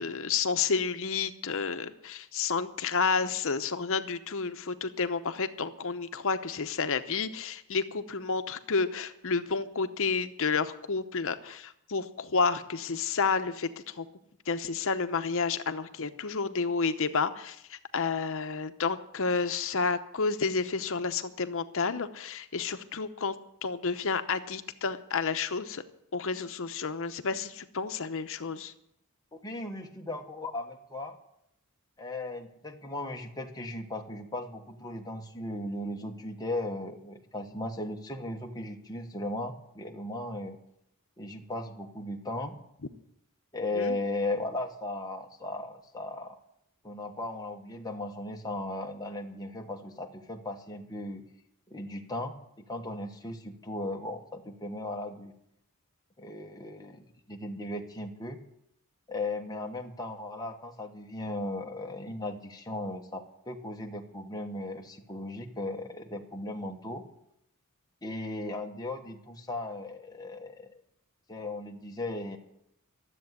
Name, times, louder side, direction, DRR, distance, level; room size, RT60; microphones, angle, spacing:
voice 1, 0.0-14.1 14.5-25.8 26.1-28.7 43.7-44.0, left 5 dB, 60° left, 10 dB, 0.9 m, -30 dB
voice 2, 29.3-31.2 32.0-40.6 41.2-42.6 43.5-46.4 46.8-51.2 51.7-55.3 56.2-58.4 59.1-67.0 68.0-70.7 71.3-72.4, left 2 dB, 15° left, 2 dB, 1.3 m, -37 dB
13.0 x 7.9 x 9.6 m, 0.78 s
head